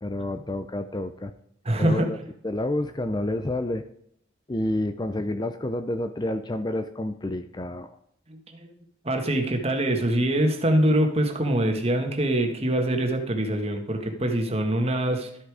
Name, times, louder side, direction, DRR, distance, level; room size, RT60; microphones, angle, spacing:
voice 1, 0.0-1.3 1.8-2.2 2.4-3.8 4.5-7.9, left 1 dB, 20° left, 10 dB, 0.6 m, -29 dB
voice 2, 1.6-2.1 8.3-8.6 9.0-15.3, right 1 dB, 30° right, 4 dB, 1.6 m, -24 dB
13.0 x 8.2 x 5.0 m, 0.70 s
head